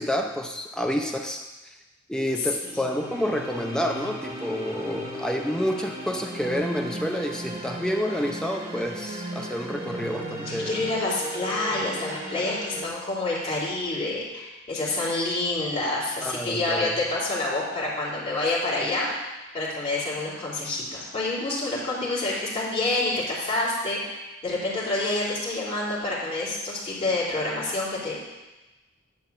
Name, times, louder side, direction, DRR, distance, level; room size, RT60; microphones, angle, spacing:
voice 1, 0.0-1.5 2.1-10.8 16.2-16.9, equal, 5° left, 2 dB, 0.7 m, -29 dB
voice 2, 2.3-3.0 10.5-19.1 19.5-28.1, left 2 dB, 30° left, -7 dB, 2.8 m, -28 dB
sound 1, 2.6-12.9, right 1 dB, 30° right, 1.3 m, -36 dB
9.8 x 4.2 x 7.1 m, 1.1 s
head